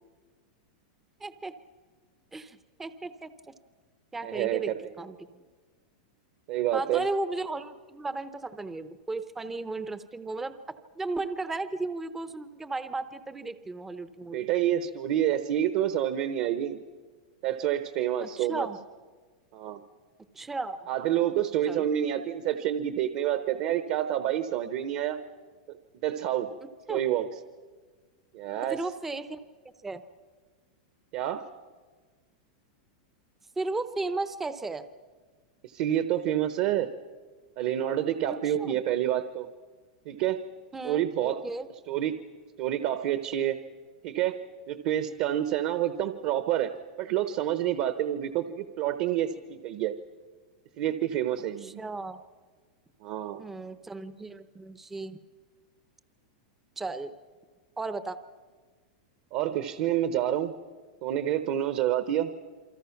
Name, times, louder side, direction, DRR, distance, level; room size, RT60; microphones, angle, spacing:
voice 1, 1.2-1.5 2.3-3.5 4.1-4.7 5.0-5.2 6.7-10.5 11.0-14.5 18.2-18.8 20.3-20.8 21.7-21.9 26.9-27.0 28.7-29.4 29.8-30.0 33.6-34.9 38.3-38.8 40.7-41.7 51.6-52.2 53.4-55.2 56.8-57.1 57.8-58.2, right 3 dB, 5° right, 11 dB, 0.7 m, -35 dB
voice 2, 4.2-4.9 6.5-7.1 14.3-16.8 17.4-18.7 19.5-19.8 20.9-25.2 25.7-25.8 26.0-26.5 26.9-27.3 28.3-28.8 31.1-31.5 35.6-36.9 37.6-39.5 40.1-40.4 40.8-41.4 41.9-42.2 42.6-43.6 44.0-44.4 44.7-46.7 47.0-49.9 50.8-51.8 53.0-53.4 59.3-60.5 61.0-62.3, right 11 dB, 35° right, 10 dB, 0.9 m, -28 dB
28.0 x 24.5 x 5.9 m, 1.5 s
supercardioid pair, 180°, 4 cm